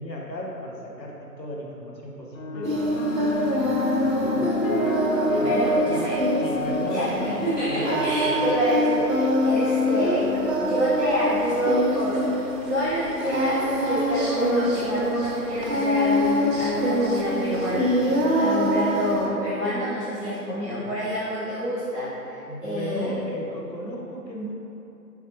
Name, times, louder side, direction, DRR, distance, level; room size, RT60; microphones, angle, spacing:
voice 1, 0.0-2.9 3.4-8.6 20.8-20.9 22.5-24.5, equal, 85° left, -3 dB, 1.4 m, -35 dB
sound 1, 2.3-10.9 11.8-12.2, left 2 dB, 55° left, 0.5 m, -32 dB
Singing, 2.6-19.3, equal, 55° right, 1.1 m, -24 dB
voice 2, 5.4-6.1 6.9-12.2 12.7-17.9 18.4-23.1, equal, ahead, -27 dB, 1.2 m, -27 dB
8.3 x 4.3 x 2.9 m, 2.9 s
figure-of-eight pair, 160°, 49 cm